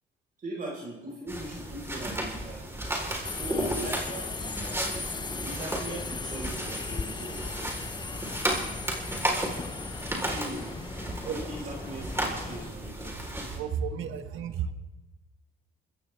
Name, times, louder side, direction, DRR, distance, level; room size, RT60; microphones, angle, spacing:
voice 1, 0.4-2.7 3.3-4.8 5.4-7.4 10.2-10.8 11.2-13.1, right 1 dB, 45° right, -3 dB, 4.8 m, -39 dB
sound 1, 1.3-13.6, right 1 dB, 10° right, 4.0 m, -34 dB
Subway metro underground, 3.2-12.7, left 4 dB, 20° left, 0.5 m, -38 dB
voice 2, 13.5-14.7, right 7 dB, 80° right, 9 dB, 1.3 m, -32 dB
25.5 x 15.0 x 3.5 m, 1.1 s
cardioid pair, 90°, 20 cm